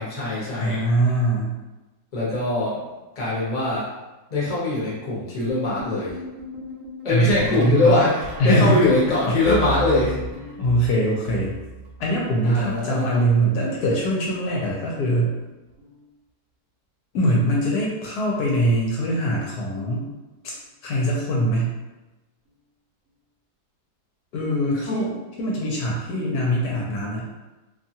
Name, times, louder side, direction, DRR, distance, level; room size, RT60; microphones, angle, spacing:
voice 1, 0.0-0.8 2.1-3.9 4.3-6.1 7.0-10.2 12.4-13.2 24.9-25.1, left 2 dB, 35° left, -6 dB, 0.7 m, -22 dB
voice 2, 0.6-1.6 7.1-7.9 8.4-8.8 9.3-9.4 10.6-11.5 12.0-15.3 17.1-20.1 20.4-20.5 20.8-21.7 24.3-25.1 25.4-27.3, right 1 dB, 75° left, -3 dB, 1.1 m, -22 dB
sound 1, 5.5-12.2 12.5-14.1 15.1-15.5 15.7-16.1 17.6-17.9 18.2-18.5 20.0-20.1, right 2 dB, 65° right, 0.8 m, -36 dB
2.8 x 2.3 x 2.7 m, 1.1 s
omnidirectional pair, 1.8 m